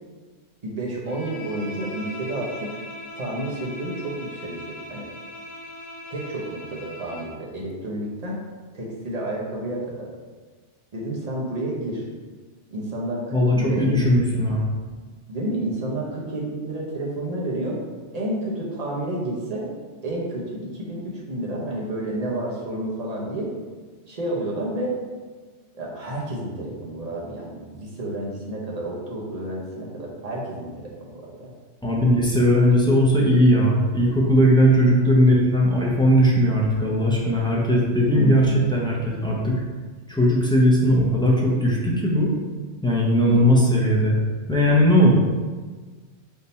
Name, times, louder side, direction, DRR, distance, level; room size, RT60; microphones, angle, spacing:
voice 1, 0.6-2.7 3.1-5.1 6.1-8.4 8.7-10.1 10.9-12.0 12.7-14.0 15.3-17.8 18.1-19.6 20.0-23.5 24.1-24.9 25.7-31.5 34.8-35.1 38.1-38.7 43.2-43.5, right 1 dB, 40° right, -4 dB, 0.8 m, -30 dB
Bowed string instrument, 1.0-7.4, left 1 dB, 80° left, 1.0 m, -39 dB
voice 2, 13.3-14.6 31.8-39.6 40.1-42.3 42.8-44.1 44.5-45.1, equal, 5° left, -5 dB, 0.4 m, -18 dB
3.7 x 2.8 x 4.0 m, 1.4 s
omnidirectional pair, 1.2 m